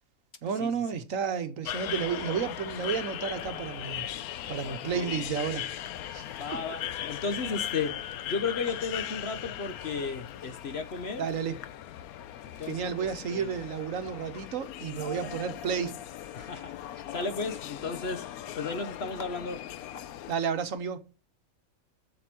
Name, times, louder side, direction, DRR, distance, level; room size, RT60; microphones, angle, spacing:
voice 1, 0.4-4.1 4.5-5.7 6.1-6.2 11.2-11.5 12.7-15.9 20.3-21.0, right 7 dB, 70° right, 1.3 m, -31 dB
sound 1, 1.6-20.3, left 11 dB, 85° left, 1.1 m, -39 dB
voice 2, 4.6-5.3 6.4-11.3 12.6-13.6 15.0-15.4 16.3-18.3 18.5-19.6, left 4 dB, 50° left, 1.2 m, -35 dB
7.8 x 7.0 x 5.9 m
omnidirectional pair, 1.5 m